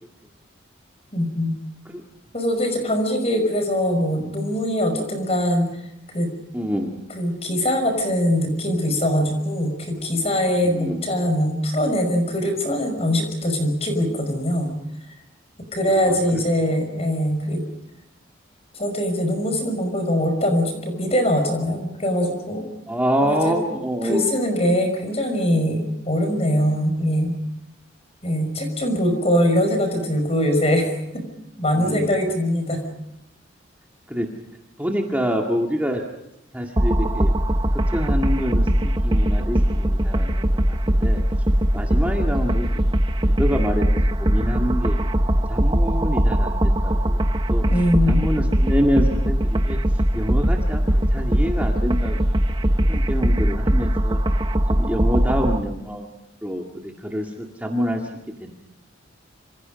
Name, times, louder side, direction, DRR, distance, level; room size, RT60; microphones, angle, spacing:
voice 1, 1.1-1.5 2.3-5.7 6.1-6.3 7.2-14.7 15.7-17.6 18.7-22.7 23.2-23.6 24.0-27.3 28.2-31.2 31.6-32.8 47.7-48.2, equal, 30° left, 6 dB, 5.7 m, -22 dB
voice 2, 6.5-7.0 10.6-11.0 15.9-16.4 22.9-24.3 31.7-32.1 34.1-34.3 34.8-36.0 36.5-37.3 37.7-38.7 39.0-41.2 41.7-42.9 43.3-43.9 44.2-45.0 45.5-47.2 47.5-47.6 48.1-49.8 50.1-50.9 51.1-52.5 52.9-54.2 54.7-56.1 56.4-58.0 58.4-58.5, equal, 10° right, 0 dB, 1.9 m, -26 dB
sound 1, 36.8-55.6, equal, 25° right, 1.0 m, -20 dB
27.0 x 26.5 x 5.3 m, 0.84 s
head